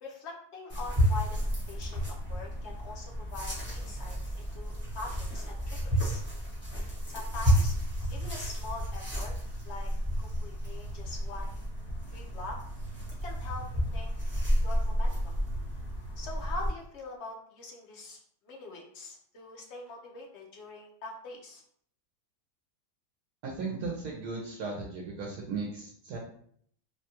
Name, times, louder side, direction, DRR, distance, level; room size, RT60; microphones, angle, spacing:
voice 1, 0.0-1.4 1.7-6.2 7.1-7.7 8.1-9.3 9.6-9.9 10.2-11.6 12.1-12.6 13.2-14.2 14.6-15.3 16.2-18.2 18.5-21.6, left 3 dB, 55° left, -1 dB, 0.8 m, -43 dB
sound 1, 0.7-16.7, equal, 10° left, 1.0 m, -31 dB
voice 2, 23.4-26.2, right 4 dB, 75° right, -3 dB, 1.2 m, -36 dB
3.5 x 2.2 x 2.8 m, 0.62 s
omnidirectional pair, 1.7 m